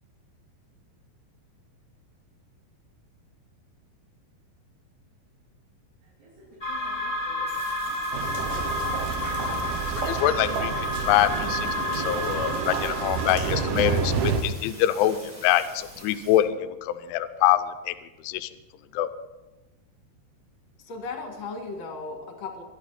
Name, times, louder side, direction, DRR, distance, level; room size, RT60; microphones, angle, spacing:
voice 1, 6.0-8.7, right 3 dB, 65° right, -6 dB, 5.3 m, -51 dB
sound 1, 6.6-14.3, left 1 dB, 15° left, 1.8 m, -31 dB
sound 2, 7.5-16.4, right 1 dB, 20° right, 6.3 m, -46 dB
sound 3, 8.1-14.4, right 6 dB, 85° right, 1.8 m, -29 dB
voice 2, 10.0-10.7 11.1-11.7 12.0-17.9 18.2-18.5 18.9-19.1, left 13 dB, 85° left, 9 dB, 3.1 m, -24 dB
voice 3, 20.8-22.6, left 3 dB, 45° left, 2 dB, 2.8 m, -36 dB
24.0 x 12.0 x 4.2 m, 1.1 s
omnidirectional pair, 5.5 m